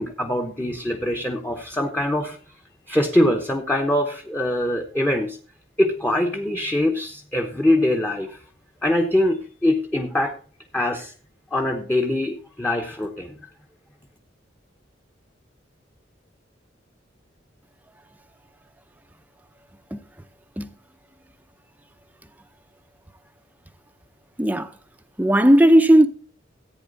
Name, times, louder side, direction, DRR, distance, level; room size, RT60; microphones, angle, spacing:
voice 1, 0.0-2.4 2.9-5.4 5.8-8.4 8.8-10.3 10.7-11.1 11.5-13.4, left 1 dB, 10° left, 1.0 m, -23 dB
voice 2, 24.4-24.7 25.2-26.1, right 1 dB, 10° right, 0.7 m, -15 dB
14.0 x 9.1 x 4.0 m
head